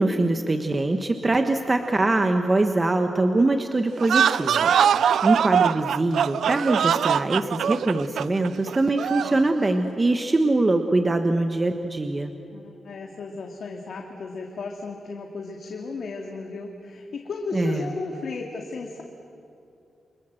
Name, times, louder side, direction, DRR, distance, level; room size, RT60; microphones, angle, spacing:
voice 1, 0.0-12.3 17.5-17.9, right 2 dB, 25° right, 6 dB, 1.2 m, -23 dB
sound 1, 4.0-9.4, right 8 dB, 85° right, 0.6 m, -22 dB
voice 2, 12.5-19.0, left 4 dB, 65° left, 1 dB, 2.3 m, -34 dB
29.5 x 25.5 x 7.8 m, 2.7 s
wide cardioid pair, 125°, 0 cm